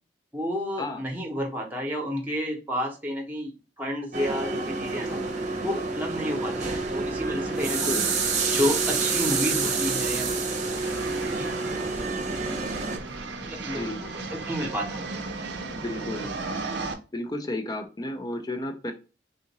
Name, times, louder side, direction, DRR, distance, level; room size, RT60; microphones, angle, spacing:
voice 1, 0.3-5.2 5.6-8.0 8.5-10.4 11.4-11.5 13.4-15.0 15.4-15.5, equal, 10° right, 1 dB, 0.9 m, -31 dB
sound 1, 4.1-13.0, right 4 dB, 40° right, 0.8 m, -28 dB
sound 2, 6.8-16.9, right 3 dB, 70° right, 0.6 m, -37 dB
voice 2, 7.7-8.0 13.7-14.0 15.8-16.3 17.1-18.9, left 1 dB, 20° left, 5 dB, 0.5 m, -32 dB
3.8 x 2.5 x 2.8 m, 0.32 s
head